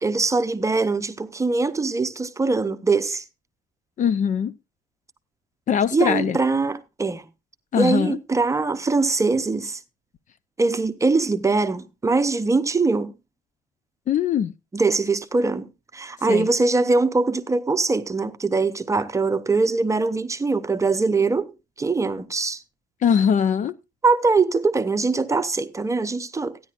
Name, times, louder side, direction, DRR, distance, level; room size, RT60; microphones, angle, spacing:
voice 1, 0.0-3.2 5.9-7.2 7.8-9.8 10.6-13.1 14.7-15.7 15.9-21.5 21.8-22.6 24.0-26.6, right 3 dB, 20° right, 0.7 m, -22 dB
voice 2, 4.0-4.5 5.7-6.4 7.7-8.2 14.1-14.5 16.3-16.5 23.0-23.7, left 8 dB, 50° left, 0.6 m, -21 dB
15.0 x 10.0 x 2.5 m
cardioid pair, 110°, 17 cm